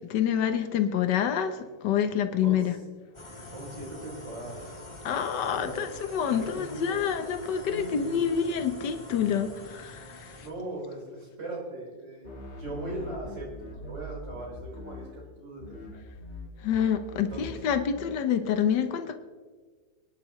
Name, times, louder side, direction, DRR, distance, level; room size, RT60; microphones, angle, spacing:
voice 1, 0.1-2.7 5.0-10.4 16.6-19.1, left 8 dB, 70° left, 8 dB, 1.6 m, -27 dB
voice 2, 2.4-2.8 3.4-4.8 5.3-7.0 7.6-8.2 10.4-16.0 17.1-17.6, right 2 dB, 75° right, -4 dB, 5.5 m, -40 dB
sound 1, 3.1-10.5, left 1 dB, 15° left, 1.5 m, -45 dB
sound 2, 12.2-15.3 15.6-18.2, left 1 dB, 40° left, 2.2 m, -42 dB
24.5 x 11.0 x 3.2 m, 1.5 s
omnidirectional pair, 2.0 m